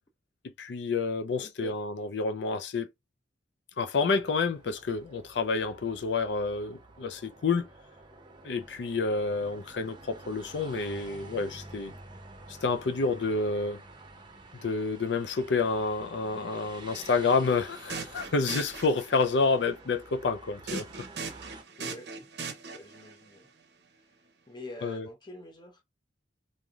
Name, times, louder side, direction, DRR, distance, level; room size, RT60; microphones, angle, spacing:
voice 1, 0.6-2.9 3.8-7.7 8.4-11.9 12.6-13.8 14.6-20.9 24.8-25.1, left 4 dB, 65° left, 0.5 m, -29 dB
voice 2, 1.4-1.8 21.8-22.1 22.7-23.5 24.5-25.8, left 1 dB, 25° left, 0.7 m, -45 dB
sound 1, 4.0-21.6, right 2 dB, 25° right, 0.6 m, -49 dB
sound 2, 17.7-19.4 20.7-23.1, right 4 dB, 65° right, 0.7 m, -39 dB
3.3 x 2.6 x 2.3 m
head